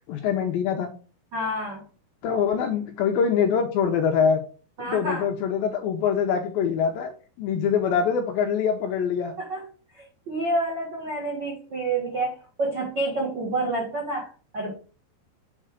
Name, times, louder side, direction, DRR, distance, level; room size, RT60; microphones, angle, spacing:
voice 1, 0.1-0.9 2.2-4.4 4.8-7.1 7.4-9.3, left 7 dB, 80° left, 4 dB, 2.2 m, -24 dB
voice 2, 1.3-1.8 4.8-5.2 9.4-9.6 9.9-14.7, right 2 dB, 75° right, -2 dB, 1.0 m, -28 dB
7.7 x 4.0 x 4.9 m, 0.38 s
omnidirectional pair, 4.9 m